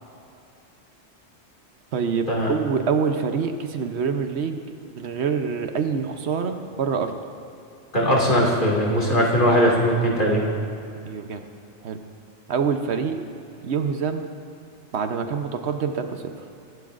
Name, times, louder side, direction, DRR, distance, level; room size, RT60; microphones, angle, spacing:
voice 1, 1.9-4.6 4.9-7.1 11.0-11.4 11.8-12.0 12.5-13.3 13.6-14.2 14.9-16.3, right 6 dB, 75° right, 6 dB, 1.1 m, -26 dB
voice 2, 7.9-10.4, equal, 50° left, -3 dB, 2.4 m, -20 dB
24.5 x 11.0 x 2.5 m, 2.7 s
omnidirectional pair, 1.1 m